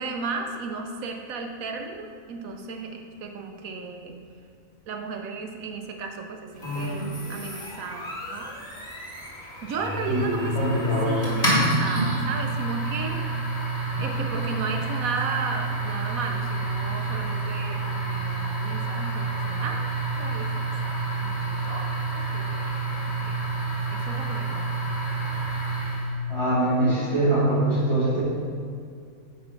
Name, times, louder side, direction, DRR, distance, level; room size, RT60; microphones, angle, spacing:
voice 1, 0.0-4.2 4.9-8.5 9.4-10.5 11.1-13.2 14.0-19.9 20.2-20.5 20.8-21.9 22.3-22.8 23.0-23.4 23.9-24.9, right 4 dB, 75° right, 4 dB, 1.2 m, -34 dB
sound 1, 6.6-26.2, right 2 dB, 30° left, 2.2 m, -28 dB
voice 2, 10.0-11.2 26.3-28.2, right 2 dB, 20° right, -7 dB, 2.0 m, -23 dB
7.7 x 4.7 x 5.1 m, 2.2 s
omnidirectional pair, 1.5 m